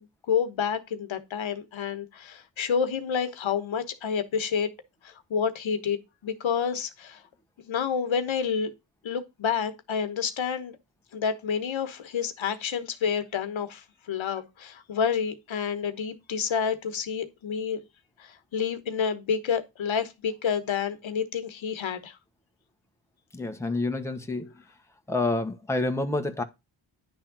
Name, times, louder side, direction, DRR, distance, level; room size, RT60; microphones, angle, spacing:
voice 1, 0.0-4.7 5.0-7.2 7.6-8.7 9.0-10.8 11.1-17.8 18.2-22.2, left 7 dB, 80° left, 1.2 m, -29 dB
voice 2, 23.3-24.5 25.1-26.4, left 2 dB, 5° left, 1.0 m, -28 dB
10.0 x 3.6 x 5.9 m
wide cardioid pair, 110°, 46 cm